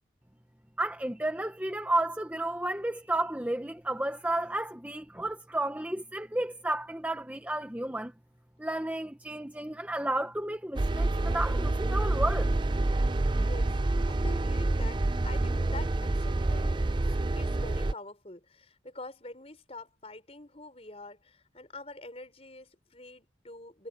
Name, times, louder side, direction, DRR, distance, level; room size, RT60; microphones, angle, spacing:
voice 1, 0.8-8.1 8.6-12.5 13.4-13.5, right 1 dB, 10° right, 0.9 m, -32 dB
sound 1, 10.8-17.9, right 2 dB, 25° right, 0.4 m, -27 dB
voice 2, 13.4-13.8 14.1-23.9, left 2 dB, 35° left, 4.8 m, -46 dB
head